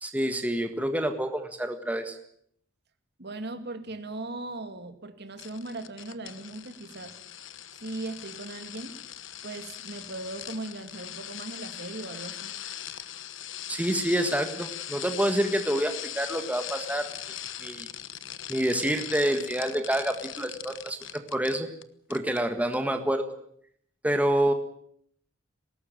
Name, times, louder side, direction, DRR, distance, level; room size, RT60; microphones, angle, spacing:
voice 1, 0.0-2.2 13.7-17.3 17.6-17.9 18.5-21.7 22.1-23.3 24.0-24.5, right 1 dB, 10° right, 6 dB, 1.6 m, -27 dB
voice 2, 3.2-7.2 7.8-9.0 9.4-12.5, right 2 dB, 55° right, 8 dB, 2.2 m, -38 dB
sound 1, 5.4-21.8 22.1-22.4 22.7-22.8, left 11 dB, 65° left, 1.2 m, -40 dB
20.5 x 18.5 x 9.1 m, 0.68 s
head